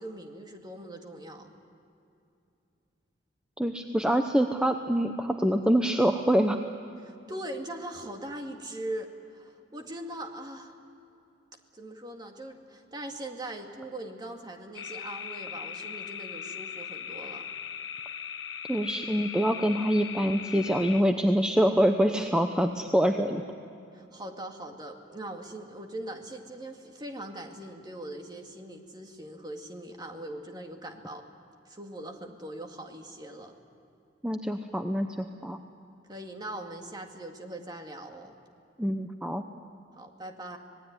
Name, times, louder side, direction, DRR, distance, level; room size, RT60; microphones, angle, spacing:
voice 1, 0.0-1.5 7.0-10.8 11.7-17.5 23.9-31.2 31.7-33.6 36.1-38.4 40.0-40.6, right 1 dB, 25° right, 3 dB, 2.1 m, -41 dB
voice 2, 3.6-6.6 18.7-23.4 34.2-35.6 38.8-39.4, equal, 5° right, 5 dB, 0.8 m, -25 dB
sound 1, 14.7-21.0, left 8 dB, 85° left, 1.1 m, -39 dB
26.0 x 19.5 x 9.6 m, 2.7 s
head